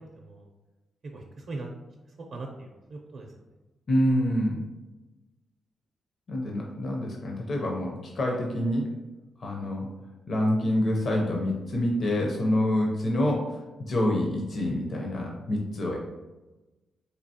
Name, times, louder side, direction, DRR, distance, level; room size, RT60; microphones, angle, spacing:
voice 1, 1.1-1.7 2.3-3.3, right 3 dB, 50° right, 0 dB, 0.5 m, -40 dB
voice 2, 3.9-4.6 6.3-8.9 9.4-9.9 10.3-16.0, left 1 dB, 45° left, 0 dB, 0.5 m, -27 dB
4.3 x 2.8 x 2.7 m, 1.1 s
wide cardioid pair, 150°, 0 cm